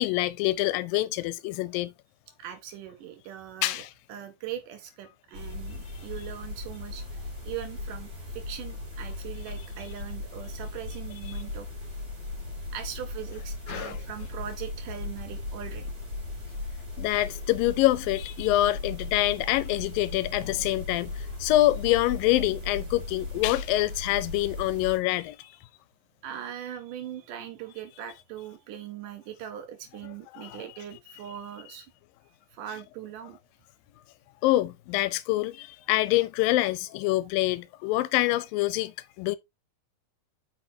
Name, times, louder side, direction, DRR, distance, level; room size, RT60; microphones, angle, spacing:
voice 1, 0.0-1.9 3.6-3.9 13.7-14.0 17.0-21.1 21.4-25.4 30.3-30.6 34.4-39.4, left 16 dB, 85° left, 2.3 m, -26 dB
voice 2, 2.4-3.8 4.1-11.7 12.7-15.9 26.2-31.9 32.5-33.4, right 10 dB, 75° right, 2.4 m, -40 dB
sound 1, 5.3-25.0, left 2 dB, 35° right, 3.6 m, -37 dB
8.8 x 5.9 x 2.7 m
omnidirectional pair, 4.0 m